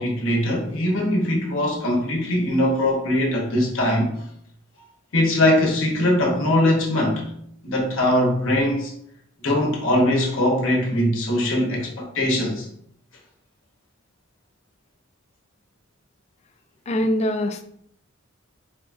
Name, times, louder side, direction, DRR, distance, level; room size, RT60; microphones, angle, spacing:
voice 1, 0.0-4.1 5.1-7.2 7.6-8.9 9.4-12.7, left 1 dB, 70° left, 1.0 m, -21 dB
voice 2, 16.9-17.6, left 1 dB, 35° left, 0.3 m, -23 dB
4.3 x 2.3 x 2.5 m
head